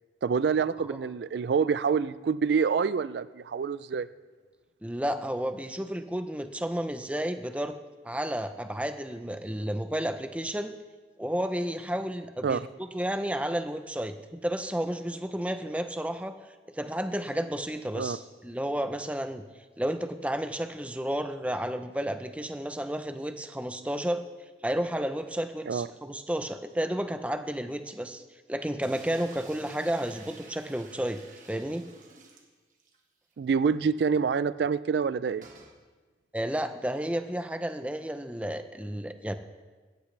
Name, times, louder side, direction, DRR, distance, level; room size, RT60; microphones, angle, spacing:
voice 1, 0.2-4.1 12.4-12.6 17.9-18.2 25.7-25.9 33.4-35.4, right 6 dB, 75° right, 15 dB, 0.4 m, -26 dB
voice 2, 4.8-7.7 8.0-10.7 11.2-16.3 16.7-19.4 19.8-24.2 24.6-28.2 28.5-31.2 31.5-31.9 36.3-39.3, right 1 dB, 5° right, 9 dB, 0.6 m, -32 dB
sound 1, 28.8-33.0 33.3-33.4 33.7-33.8 35.4-35.8, right 3 dB, 45° right, 1.7 m, -51 dB
16.5 x 14.0 x 3.3 m, 1.3 s
head